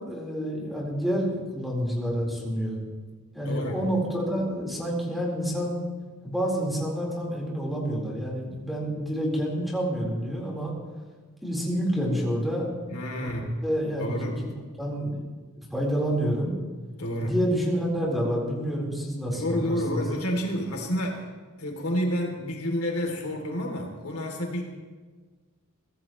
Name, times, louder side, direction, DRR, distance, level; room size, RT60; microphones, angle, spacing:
voice 1, 0.0-2.8 3.3-5.8 6.2-10.7 11.4-12.7 13.2-13.3 13.6-14.3 14.8-15.2 15.6-16.6 17.2-20.0, equal, ahead, -4 dB, 4.2 m, -28 dB
voice 2, 3.4-3.8 12.9-13.6 14.0-14.4 17.0-17.3 19.3-21.3 21.6-24.6, equal, 80° left, 1 dB, 3.0 m, -29 dB
23.5 x 16.0 x 3.2 m, 1.4 s
head